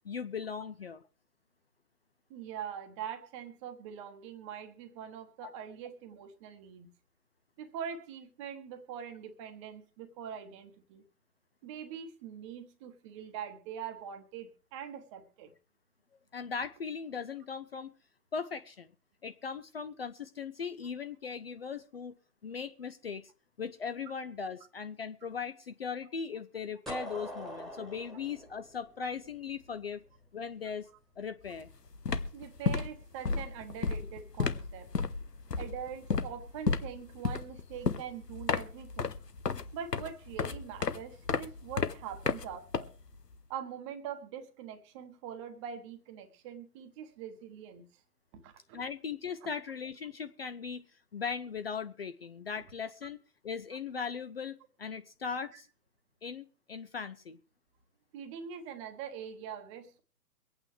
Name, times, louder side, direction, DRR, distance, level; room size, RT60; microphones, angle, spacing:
voice 1, 0.0-1.0 5.4-5.5 16.3-17.9 18.3-18.9 19.2-22.2 22.4-23.3 23.6-30.0 30.3-30.9 31.2-31.7 48.7-50.9 51.1-53.2 53.4-55.7 56.2-57.4, left 6 dB, 40° left, 11 dB, 0.6 m, -39 dB
voice 2, 2.3-6.9 7.6-11.0 11.6-15.5 32.3-34.9 35.6-39.1 39.7-42.9 43.5-47.8 48.3-48.8 49.4-49.5 58.1-60.0, right 8 dB, 20° right, 7 dB, 1.1 m, -43 dB
sound 1, 26.9-29.7, equal, ahead, 1.5 m, -43 dB
sound 2, 31.5-31.7 31.9-43.4, left 5 dB, 85° left, 1.0 m, -33 dB
24.0 x 8.8 x 3.3 m, 0.38 s
figure-of-eight pair, 130°, 47 cm